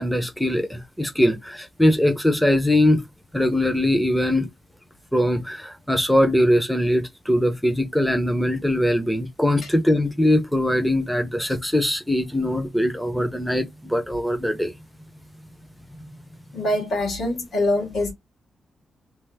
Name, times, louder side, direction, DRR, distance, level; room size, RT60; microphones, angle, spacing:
voice 1, 0.0-3.0 3.3-4.5 5.1-14.7, left 1 dB, ahead, 0.5 m, -21 dB
voice 2, 16.5-18.1, left 1 dB, 90° left, 1.7 m, -24 dB
3.2 x 2.0 x 3.2 m
wide cardioid pair, 155°, 0 cm